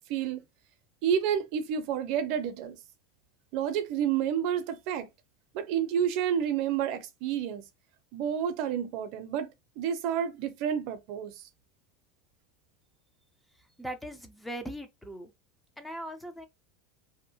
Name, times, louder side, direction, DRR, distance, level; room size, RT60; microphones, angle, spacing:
voice 1, 0.1-0.4 1.0-2.8 3.5-5.1 5.5-7.6 8.1-9.5 9.8-11.4, right 8 dB, 60° right, 0.5 m, -29 dB
voice 2, 13.5-15.3 15.8-16.5, right 1 dB, 5° left, 0.5 m, -40 dB
2.7 x 2.0 x 2.7 m
supercardioid pair, 120°, 0 cm